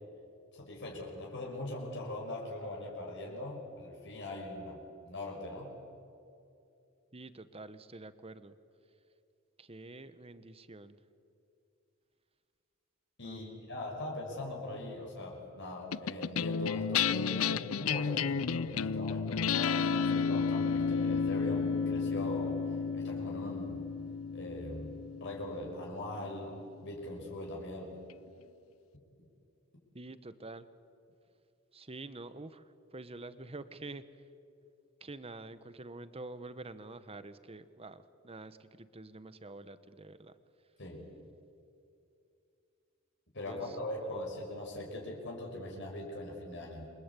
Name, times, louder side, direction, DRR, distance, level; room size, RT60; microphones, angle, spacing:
voice 1, 0.5-5.7 13.2-22.6 22.9-23.8 24.3-28.0 40.8-41.1 43.3-46.9, left 1 dB, 60° left, -1 dB, 5.8 m, -41 dB
voice 2, 7.1-8.6 9.6-11.0 13.2-13.7 29.9-30.7 31.7-34.0 35.0-40.3 43.4-44.2, right 2 dB, 30° right, 12 dB, 1.2 m, -47 dB
sound 1, 15.9-26.5, left 6 dB, 85° left, 0.6 m, -32 dB
28.0 x 24.5 x 8.5 m, 2.6 s
head